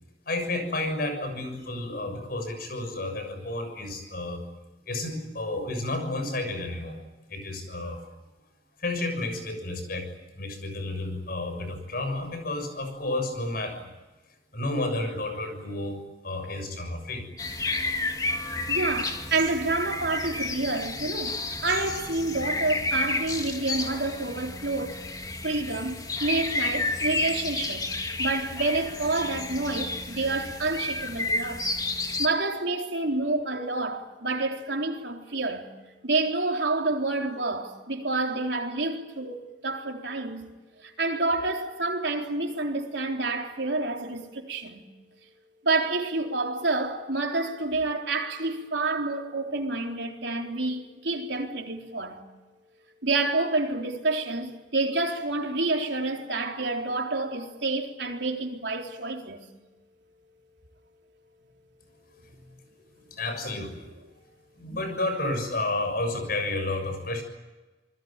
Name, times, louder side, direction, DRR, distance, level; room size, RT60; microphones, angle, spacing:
voice 1, 0.2-4.4 4.8-7.0 7.3-8.0 8.8-10.1 10.3-13.9 14.5-17.3 63.1-63.9 64.5-67.2, left 2 dB, 55° left, 6.9 m, -31 dB
sound 1, 17.4-32.3, left 2 dB, 20° left, 2.1 m, -31 dB
voice 2, 18.7-25.0 25.4-27.9 28.2-31.7 32.2-35.7 36.0-40.5 40.8-44.9 45.6-52.2 53.0-59.4 62.3-62.5, right 2 dB, 70° right, 3.9 m, -28 dB
27.5 x 21.0 x 9.0 m
head